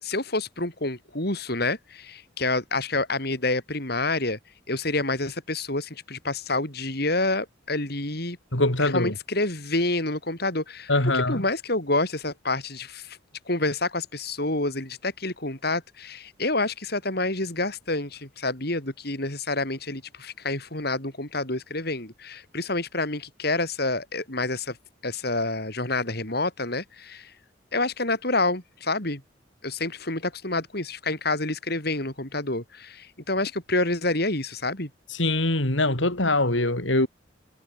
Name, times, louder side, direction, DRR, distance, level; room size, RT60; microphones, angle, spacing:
voice 1, 0.0-4.4 4.7-8.4 8.8-13.2 13.5-24.8 25.0-27.3 27.7-29.2 29.6-34.9, left 2 dB, 55° left, 5.8 m, -28 dB
voice 2, 8.5-9.1 10.9-11.4 35.2-37.1, left 2 dB, 80° left, 5.2 m, -23 dB
head